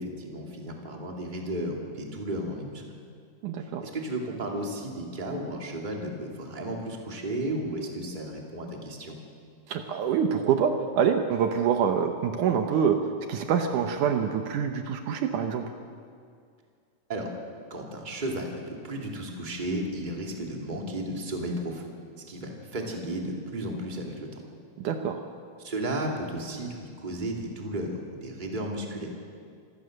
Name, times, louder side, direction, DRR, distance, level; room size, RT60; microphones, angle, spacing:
voice 1, 0.0-2.8 3.8-9.2 17.1-17.3 17.7-21.9 22.3-24.4 25.6-29.2, right 1 dB, 15° right, 0 dB, 2.4 m, -34 dB
voice 2, 3.4-3.8 9.7-13.0 13.3-15.6 24.8-25.2, right 7 dB, 70° right, 5 dB, 2.4 m, -26 dB
26.0 x 18.0 x 6.6 m, 2.2 s
omnidirectional pair, 3.9 m